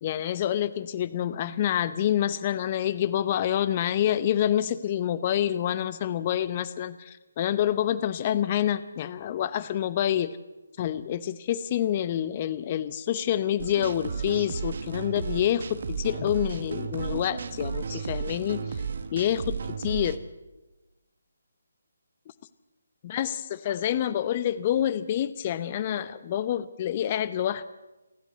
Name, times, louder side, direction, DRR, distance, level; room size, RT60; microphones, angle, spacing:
voice 1, 0.0-10.4 10.8-18.8 19.1-20.2 23.0-27.7, left 11 dB, 30° left, 16 dB, 0.7 m, -27 dB
sound 1, 13.6-20.2, right 6 dB, 55° right, 1.4 m, -34 dB
29.0 x 11.0 x 8.3 m, 1.1 s
figure-of-eight pair, 150°, 0 cm